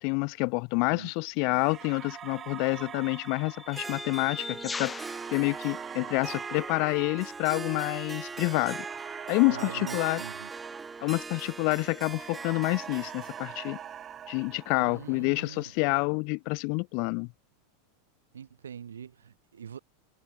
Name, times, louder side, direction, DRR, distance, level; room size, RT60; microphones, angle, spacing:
voice 1, 0.0-4.9 5.3-8.8 9.3-10.2 11.0-13.8 14.3-17.3, left 37 dB, 50° left, 1.1 m, -28 dB
sound 1, 1.1-1.3 2.3-6.5, left 4 dB, 15° left, 2.2 m, -42 dB
sound 2, 1.5-11.7 12.0-15.4, right 10 dB, 30° right, 2.5 m, -45 dB
Harp, 3.7-15.5, right 4 dB, 15° right, 1.6 m, -41 dB
voice 2, 9.5-10.5 14.8-15.6 18.3-19.8, right 8 dB, 75° right, 6.4 m, -43 dB
figure-of-eight pair, 85°, 0 cm